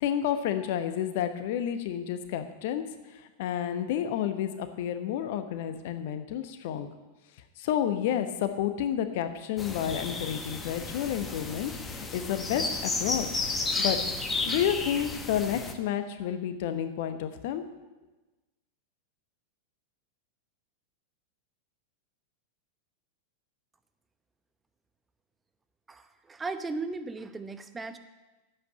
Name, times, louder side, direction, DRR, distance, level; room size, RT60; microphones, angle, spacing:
voice 1, 0.0-2.8 3.4-6.9 7.6-13.4 13.8-14.0 14.5-17.6, left 10 dB, 50° left, 9 dB, 1.0 m, -30 dB
sound 1, 9.6-15.7, left 3 dB, 15° left, 1.2 m, -33 dB
voice 2, 25.9-28.0, right 3 dB, 15° right, 9 dB, 0.9 m, -36 dB
9.6 x 8.0 x 8.6 m, 1.1 s
figure-of-eight pair, 90°, 0 cm